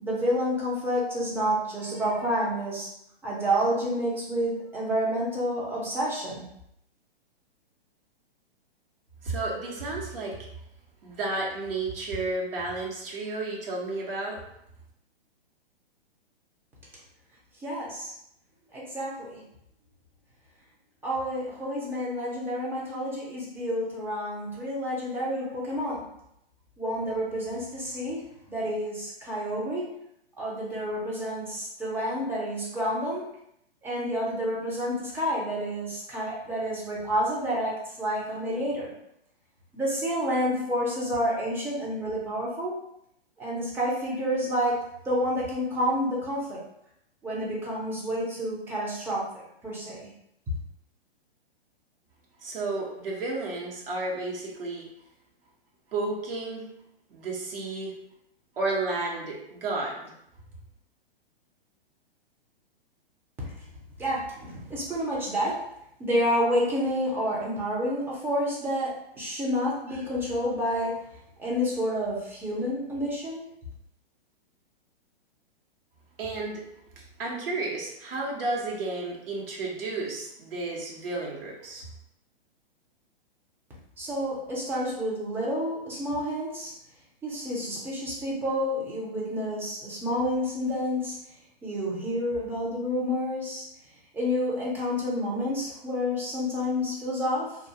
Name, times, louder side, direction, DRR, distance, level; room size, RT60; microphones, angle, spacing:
voice 1, 0.0-2.9 3.2-6.5 17.6-18.1 18.7-19.4 21.0-26.0 26.8-28.2 28.5-29.9 30.4-33.3 33.8-38.9 39.7-42.8 43.4-46.6 47.2-50.1 63.4-63.5 64.0-65.6 66.0-71.0 71.4-73.4 84.0-86.7 87.2-91.2 91.6-93.7 94.1-97.6, equal, 5° right, -5 dB, 0.4 m, -29 dB
voice 2, 9.2-10.4 11.0-14.4 52.4-54.9 55.9-56.7 57.1-58.0 58.6-60.1 76.2-76.6 77.2-81.9, right 2 dB, 65° right, -3 dB, 0.9 m, -32 dB
2.4 x 2.2 x 2.7 m, 0.76 s
hypercardioid pair, 120°, 30 cm